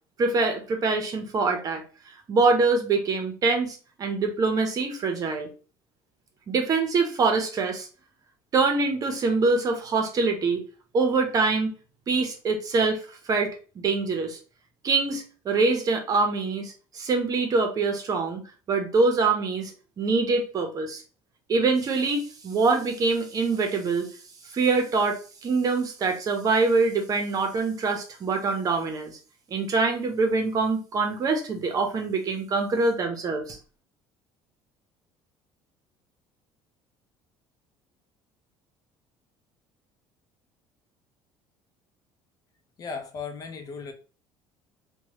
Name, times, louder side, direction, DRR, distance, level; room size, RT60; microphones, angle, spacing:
voice 1, 0.2-1.8 2.3-5.5 6.5-7.9 8.5-10.6 10.9-11.7 12.1-14.4 14.8-18.4 18.7-19.7 20.0-21.0 21.5-24.1 24.5-29.1 29.5-33.6, right 4 dB, 40° right, 0.8 m, -24 dB
voice 2, 42.8-43.9, left 5 dB, 40° left, 0.6 m, -36 dB
3.0 x 2.3 x 2.9 m
cardioid pair, 115°, 10 cm